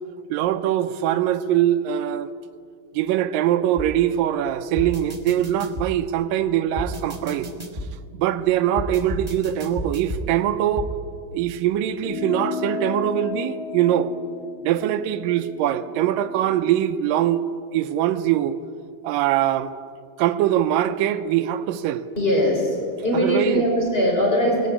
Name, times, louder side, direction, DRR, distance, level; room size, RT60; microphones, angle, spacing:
voice 1, 0.3-2.3 3.0-7.5 8.1-10.9 11.3-14.1 14.6-17.4 17.7-18.6 19.0-19.7 20.2-22.1 23.1-23.6, right 11 dB, 85° right, 9 dB, 2.5 m, -22 dB
sound 1, 3.8-3.9 4.8-5.9 6.8-7.9 8.8-10.2 10.8-10.9, equal, 55° right, 0.4 m, -31 dB
sound 2, 12.0-16.8, left 6 dB, 75° left, 3.4 m, -34 dB
voice 2, 22.2-24.7, equal, 15° left, -1 dB, 5.6 m, -21 dB
19.0 x 17.5 x 9.8 m, 2.2 s
omnidirectional pair, 3.9 m